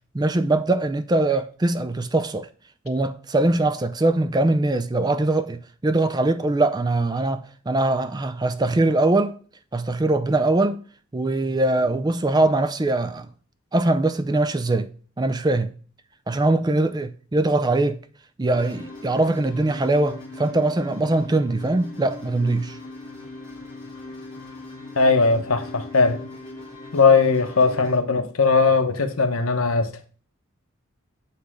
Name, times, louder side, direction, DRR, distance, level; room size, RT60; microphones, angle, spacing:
voice 1, 0.1-2.5 2.9-9.4 9.7-10.8 11.1-13.3 13.7-14.9 15.2-15.7 16.3-18.0 18.4-22.8, right 2 dB, 20° right, 0.4 m, -22 dB
sound 1, 18.5-28.0, left 2 dB, 20° left, 2.4 m, -39 dB
voice 2, 25.0-26.2 26.9-30.1, left 4 dB, 90° left, 0.9 m, -19 dB
8.2 x 3.2 x 4.8 m
head